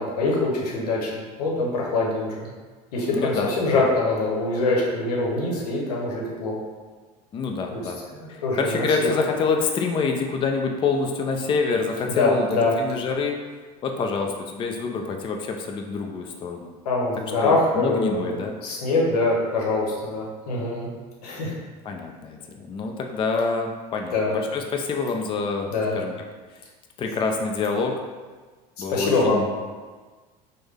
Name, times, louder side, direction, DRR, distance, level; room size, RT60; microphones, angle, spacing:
voice 1, 0.0-2.5 2.9-6.6 7.7-7.8 8.1-9.1 12.1-12.7 16.8-20.9 21.2-21.6 24.1-24.3 25.7-26.0 28.9-29.7, left 2 dB, 90° left, -2 dB, 0.8 m, -24 dB
voice 2, 3.1-3.8 7.3-8.0 8.3-13.4 13.8-16.7 17.4-18.6 21.8-25.7 25.9-26.1 27.0-28.0 28.8-29.5, left 4 dB, 25° left, 3 dB, 0.3 m, -26 dB
3.2 x 2.1 x 3.5 m, 1.4 s
hypercardioid pair, 90°, 19 cm